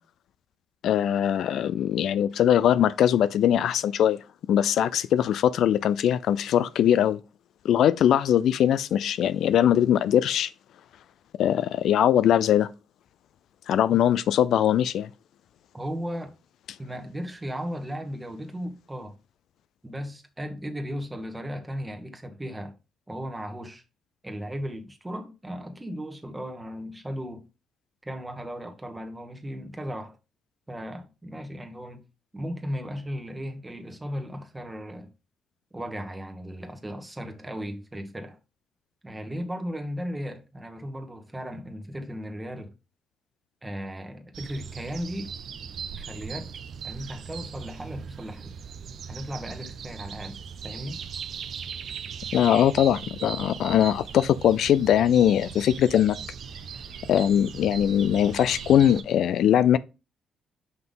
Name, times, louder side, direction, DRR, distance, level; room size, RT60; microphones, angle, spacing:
voice 1, 0.8-4.2 4.5-7.2 7.6-10.5 11.4-12.7 13.7-15.1 52.3-56.2 57.1-59.8, left 10 dB, 75° left, 0.3 m, -21 dB
voice 2, 15.7-16.3 16.8-19.2 19.8-22.7 23.1-23.8 24.2-27.5 28.0-30.2 30.7-32.0 32.3-35.1 35.7-38.4 39.0-42.7 43.6-45.3 45.9-46.5 46.8-48.5 49.1-50.4 50.6-51.0, equal, 10° right, 1.3 m, -36 dB
sound 1, 44.3-59.0, right 7 dB, 60° right, 0.7 m, -39 dB
5.7 x 5.4 x 3.9 m
cardioid pair, 90°, 0 cm